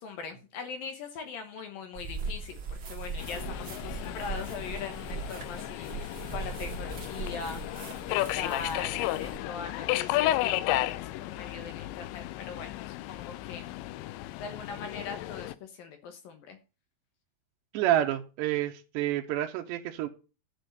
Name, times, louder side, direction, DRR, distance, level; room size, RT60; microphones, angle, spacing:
voice 1, 0.0-7.6 8.1-13.7 14.4-16.6, left 5 dB, 70° left, 2.5 m, -41 dB
sound 1, 1.9-9.4, right 4 dB, 50° right, 1.5 m, -39 dB
Subway metro underground, 3.2-15.6, left 15 dB, 90° left, 3.0 m, -33 dB
voice 2, 17.7-20.1, right 12 dB, 85° right, 3.0 m, -28 dB
10.0 x 5.3 x 7.9 m
omnidirectional pair, 5.1 m